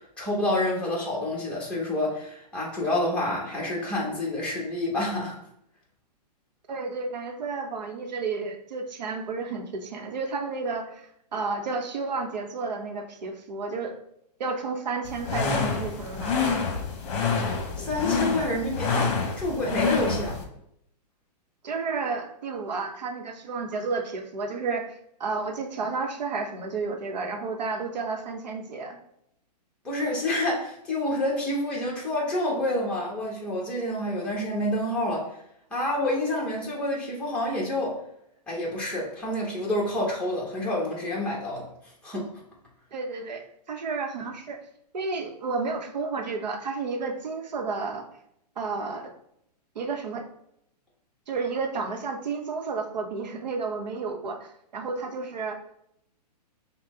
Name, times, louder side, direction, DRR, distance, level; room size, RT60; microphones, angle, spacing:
voice 1, 0.2-5.3 17.8-20.4 29.8-35.3 35.7-38.0 38.5-41.7 42.0-42.3, left 1 dB, 5° left, -4 dB, 1.0 m, -28 dB
voice 2, 6.7-13.9 14.4-16.6 21.6-29.0 42.9-44.6 44.9-48.0 48.6-49.1 49.7-50.2 51.3-55.6, right 4 dB, 85° right, 4 dB, 0.8 m, -31 dB
sound 1, 15.1-20.4, left 5 dB, 45° left, 0.9 m, -27 dB
5.7 x 2.2 x 3.6 m, 0.74 s
hypercardioid pair, 150°, 21 cm